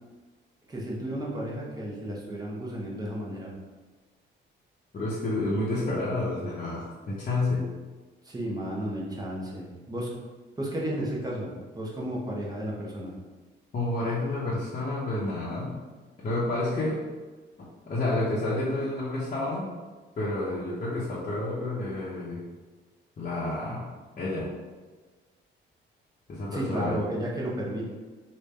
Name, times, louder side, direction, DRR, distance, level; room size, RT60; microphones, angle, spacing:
voice 1, 0.7-3.5 8.2-10.1 10.6-13.1 26.5-27.8, right 1 dB, 20° right, -4 dB, 1.0 m, -33 dB
voice 2, 4.9-7.7 13.7-15.7 16.2-17.0 17.6-19.7 20.2-22.4 23.2-23.9 24.2-24.5 26.3-26.9, left 2 dB, 40° left, -8 dB, 0.8 m, -29 dB
3.2 x 2.7 x 3.3 m, 1.3 s
cardioid pair, 90°, 20 cm